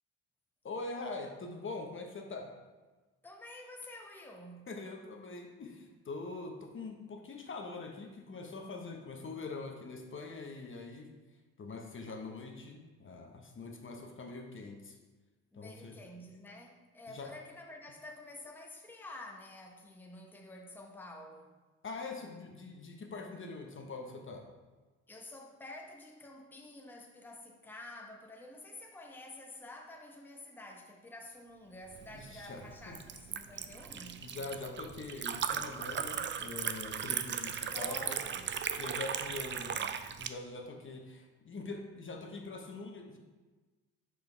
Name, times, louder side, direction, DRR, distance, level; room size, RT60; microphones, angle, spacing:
voice 1, 0.6-2.5 4.7-11.1 11.6-15.0 15.5-16.0 17.1-17.3 21.8-24.4 32.1-33.0 34.2-38.2 38.8-39.9 40.2-43.2, left 3 dB, 35° left, 2 dB, 1.0 m, -43 dB
voice 2, 3.2-4.7 15.5-21.5 25.1-34.3 37.7-38.5, left 1 dB, 5° left, 1 dB, 0.9 m, -49 dB
Liquid, 31.9-40.3, right 8 dB, 35° right, 0.5 m, -37 dB
6.3 x 5.1 x 3.4 m, 1.3 s
supercardioid pair, 65°, 35 cm